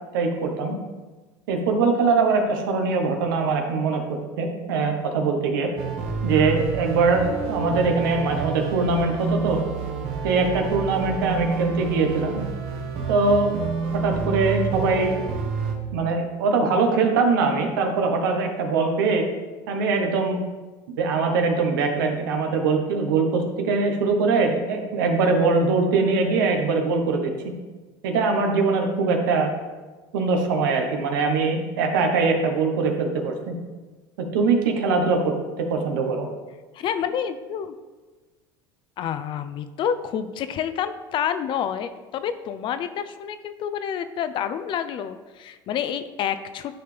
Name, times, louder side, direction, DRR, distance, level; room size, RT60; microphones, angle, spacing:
voice 1, 0.1-0.8 1.5-4.0 4.4-5.7 6.2-9.6 10.2-12.4 13.1-13.5 13.9-15.2 15.9-19.2 19.7-20.4 20.9-27.3 28.0-29.5 30.1-33.5 34.3-36.3, right 4 dB, 85° right, 3 dB, 1.2 m, -22 dB
sound 1, 5.8-15.8, right 5 dB, 65° right, 1.4 m, -29 dB
voice 2, 36.7-37.7 39.0-46.7, left 8 dB, 50° left, 11 dB, 0.5 m, -28 dB
10.5 x 4.3 x 3.4 m, 1.3 s
supercardioid pair, 100°, 11 cm